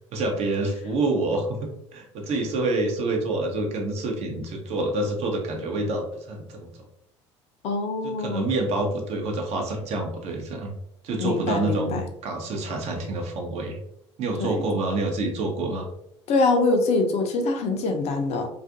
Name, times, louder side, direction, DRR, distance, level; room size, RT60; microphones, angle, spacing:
voice 1, 0.1-6.7 8.0-10.7 11.0-13.8 14.2-15.9, right 2 dB, 45° right, 2 dB, 0.7 m, -27 dB
voice 2, 7.6-8.5 11.2-12.0 14.4-14.5 16.3-18.5, left 3 dB, 45° left, 4 dB, 0.5 m, -24 dB
2.4 x 2.4 x 2.5 m, 0.79 s
figure-of-eight pair, 60°, 15 cm